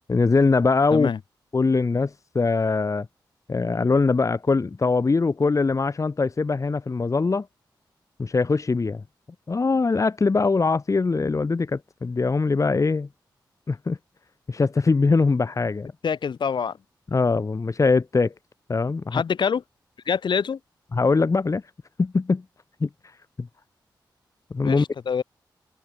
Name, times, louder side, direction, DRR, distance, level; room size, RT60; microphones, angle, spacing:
voice 1, 0.1-1.1 1.5-3.1 3.5-7.5 8.2-9.0 9.5-13.1 13.7-14.0 14.5-15.9 17.1-18.3 18.7-19.2 20.9-21.6 22.0-22.4 22.8-22.9 23.4-23.5 24.5-24.8, left 4 dB, 40° left, 1.6 m, -22 dB
voice 2, 16.0-16.8 19.1-19.6 20.1-20.6 24.6-25.2, left 6 dB, 70° left, 2.4 m, -25 dB
cardioid pair, 65°, 8 cm